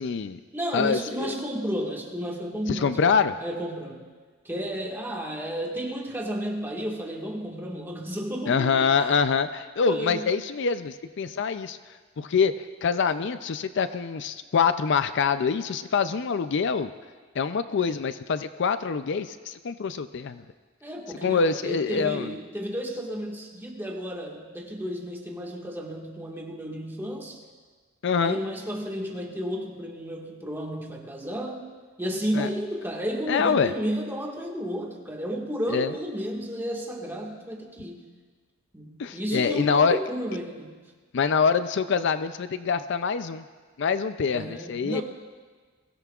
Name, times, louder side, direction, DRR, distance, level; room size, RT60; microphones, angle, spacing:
voice 1, 0.0-0.4 0.7-1.3 2.7-3.3 8.5-11.8 12.2-16.9 17.4-20.4 21.2-22.3 28.0-28.4 32.3-32.5 33.3-33.7 35.7-35.9 39.0-40.0 41.1-43.4 43.8-45.0, left 5 dB, 60° left, 12 dB, 0.4 m, -25 dB
voice 2, 0.5-4.0 4.4-9.1 9.9-10.3 20.8-27.4 28.2-31.7 32.0-38.0 38.7-40.7 44.3-45.0, equal, 10° right, -1 dB, 1.7 m, -32 dB
22.5 x 17.0 x 2.4 m, 1.4 s
head